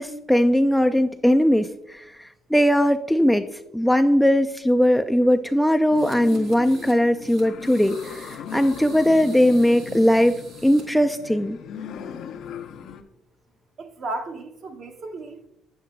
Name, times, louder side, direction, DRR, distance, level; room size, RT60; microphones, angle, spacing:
voice 1, 0.0-3.5 3.7-11.6, equal, ahead, 0.3 m, -19 dB
sound 1, 5.9-13.0, left 7 dB, 70° left, 0.6 m, -38 dB
sound 2, 5.9-7.0 7.2-10.8, right 4 dB, 80° right, 2.0 m, -47 dB
voice 2, 13.8-15.5, right 2 dB, 50° right, 0.9 m, -34 dB
8.4 x 8.0 x 2.2 m
cardioid pair, 105°, 0 cm